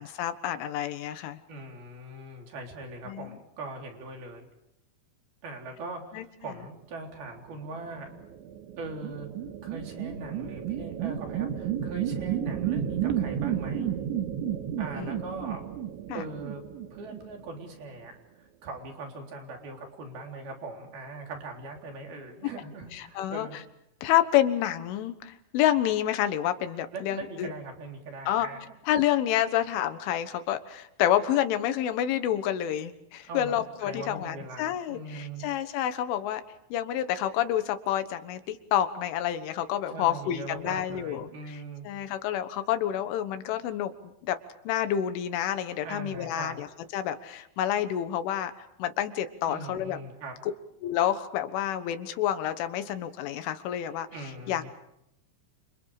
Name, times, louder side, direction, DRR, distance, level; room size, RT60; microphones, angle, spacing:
voice 1, 0.0-1.4 3.1-3.4 6.1-6.5 14.9-15.4 16.1-16.2 22.9-23.5 24.0-27.5 28.3-28.5 28.9-36.4 36.7-41.6 41.9-44.4 44.7-46.7 46.9-48.5 48.8-50.0 50.8-54.1 54.5-54.6, left 11 dB, 85° left, 10 dB, 3.9 m, -28 dB
voice 2, 1.5-4.5 5.4-8.1 8.8-9.3 9.6-13.9 14.8-15.6 16.1-16.6 16.9-18.1 18.4-23.6 26.9-28.7 33.2-35.4 39.9-41.9 45.8-46.6 49.5-50.3 54.1-54.7, right 2 dB, 55° right, 2 dB, 5.5 m, -41 dB
sound 1, 7.9-17.7, right 10 dB, 75° right, 3.8 m, -32 dB
29.5 x 29.0 x 5.0 m, 0.78 s
omnidirectional pair, 5.4 m